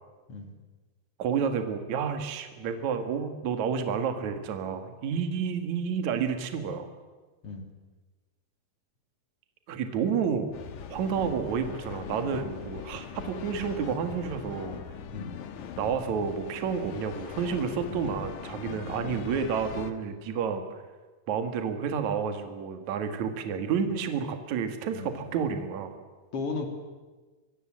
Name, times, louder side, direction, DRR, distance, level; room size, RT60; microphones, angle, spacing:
voice 1, 1.2-6.9 9.7-10.5 10.9-14.8 15.8-20.6 21.3-25.9, right 6 dB, 50° right, 7 dB, 2.8 m, -30 dB
sound 1, 10.5-19.9, left 8 dB, 60° left, 2.2 m, -41 dB
voice 2, 24.9-25.3 26.3-26.7, left 4 dB, 35° left, 5 dB, 3.2 m, -35 dB
24.0 x 23.5 x 7.7 m, 1.3 s
omnidirectional pair, 4.9 m